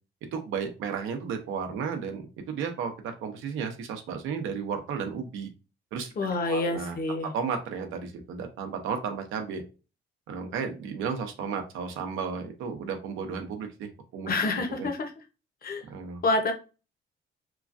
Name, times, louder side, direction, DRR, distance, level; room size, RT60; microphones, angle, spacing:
voice 1, 0.3-5.5 5.9-6.1 6.4-7.0 7.3-9.6 10.3-14.3 14.8-14.9 15.9-16.2, right 6 dB, 85° right, 5 dB, 0.6 m, -33 dB
voice 2, 6.2-7.3 14.3-15.1 15.6-15.9 16.2-16.5, left 3 dB, 50° left, 6 dB, 0.8 m, -27 dB
3.0 x 2.3 x 2.5 m, 0.32 s
cardioid pair, 90°, 20 cm